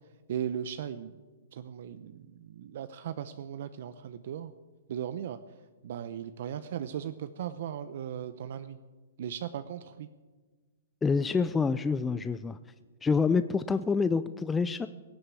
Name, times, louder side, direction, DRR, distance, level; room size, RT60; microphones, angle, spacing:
voice 1, 0.3-1.1 1.5-4.5 4.9-5.4 5.8-8.8 9.2-10.1, right 9 dB, 60° right, 12 dB, 0.7 m, -37 dB
voice 2, 11.0-12.6 13.0-14.9, left 5 dB, 10° left, 13 dB, 0.4 m, -27 dB
17.0 x 7.9 x 8.4 m, 1.3 s
hypercardioid pair, 135°, 0 cm